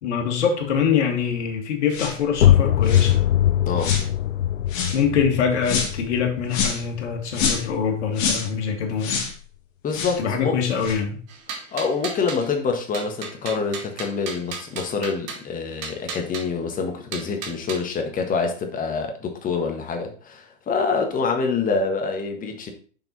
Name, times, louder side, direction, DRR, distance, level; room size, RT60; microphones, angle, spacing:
voice 1, 0.0-3.2 4.9-9.2 10.2-11.2, left 7 dB, 60° left, 3 dB, 2.1 m, -24 dB
sound 1, 1.9-2.2 2.8-3.1 3.8-4.1 4.7-5.0 5.6-5.9 6.5-6.8 7.3-7.7 8.1-8.5 9.0-9.3 9.9-10.2 10.8-11.0, left 6 dB, 40° left, 2.4 m, -26 dB
sound 2, 2.3-7.9, left 11 dB, 85° left, 0.6 m, -22 dB
voice 2, 9.8-10.6 11.7-22.7, left 5 dB, 20° left, 4 dB, 1.6 m, -26 dB
sound 3, 11.3-12.5 12.9-15.5 15.8-16.4 17.1-17.8, right 6 dB, 40° right, 1.8 m, -34 dB
6.6 x 6.1 x 4.1 m, 0.41 s
figure-of-eight pair, 100°, 38 cm